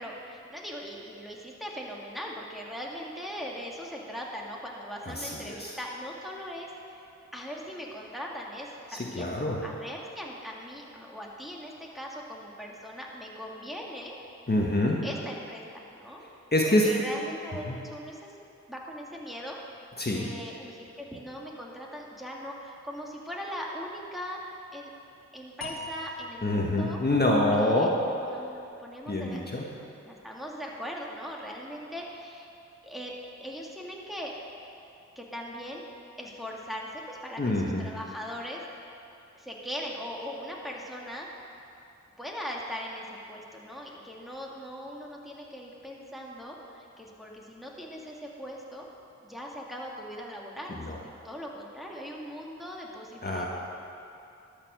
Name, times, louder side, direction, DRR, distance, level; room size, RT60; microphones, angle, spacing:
voice 1, 0.0-6.7 7.3-14.2 15.0-16.2 16.7-18.3 18.7-19.6 20.1-24.4 24.7-24.9 25.3-27.0 27.5-29.4 29.8-32.5 32.8-34.3 35.2-35.8 36.2-38.6 39.3-41.3 42.2-48.9 49.2-53.5, equal, ahead, -2 dB, 2.1 m, -40 dB
voice 2, 5.1-5.7 8.9-9.6 14.5-15.0 16.5-16.9 17.7-17.8 20.0-20.3 26.4-27.9 29.1-29.6 37.4-37.9 50.7-51.0 53.2-53.5, left 1 dB, 35° left, -2 dB, 1.4 m, -26 dB
sound 1, 25.6-28.8, left 2 dB, 60° left, 1.4 m, -43 dB
12.5 x 6.8 x 6.3 m, 2.6 s
cardioid pair, 40°, 30 cm